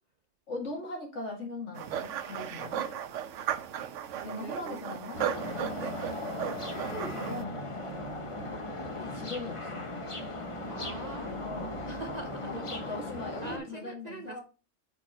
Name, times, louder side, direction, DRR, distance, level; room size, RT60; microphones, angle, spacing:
voice 1, 0.5-2.8 4.2-5.3 6.7-7.7 8.3-8.7 8.9-9.9 11.2-11.8 12.4-14.4, left 3 dB, 65° left, 0 dB, 2.3 m, -40 dB
sound 1, 1.8-7.4, right 10 dB, 75° right, 1.0 m, -36 dB
voice 2, 4.2-4.9 5.5-6.0 7.8-8.1 10.7-14.4, right 4 dB, 50° right, 6 dB, 0.5 m, -44 dB
sound 2, 5.1-13.6, left 1 dB, 30° left, 0.9 m, -37 dB
5.2 x 5.1 x 4.2 m, 0.34 s
omnidirectional pair, 1.3 m